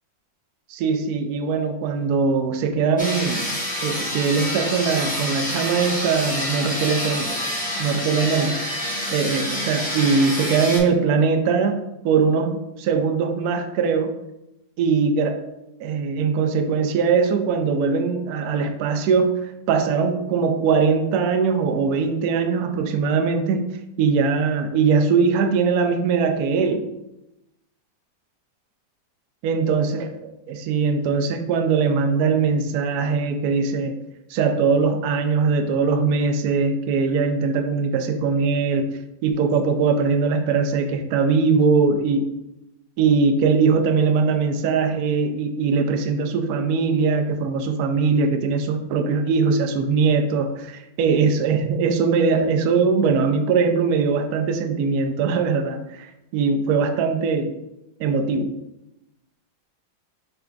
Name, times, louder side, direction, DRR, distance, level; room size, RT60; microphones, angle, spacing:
voice 1, 0.7-3.5 3.8-7.4 7.8-8.6 9.1-14.1 14.8-15.4 15.8-23.7 24.0-26.8 29.4-34.0 34.3-38.9 39.2-42.3 43.0-57.5 58.0-58.5, right 5 dB, 85° right, 5 dB, 0.8 m, -21 dB
sound 1, 3.0-10.8, equal, 10° left, 0.4 m, -27 dB
5.7 x 3.4 x 2.5 m, 0.88 s
omnidirectional pair, 2.2 m